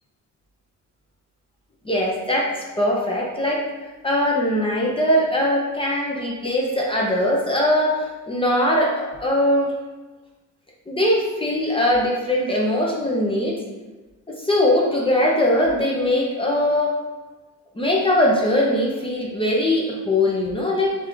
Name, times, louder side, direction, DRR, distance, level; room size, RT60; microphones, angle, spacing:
voice 1, 1.8-3.6 4.0-9.7 10.9-13.6 14.3-17.0 17.8-20.9, left 1 dB, 20° left, -2 dB, 0.7 m, -21 dB
3.5 x 3.4 x 3.4 m, 1.2 s
cardioid pair, 90°, 30 cm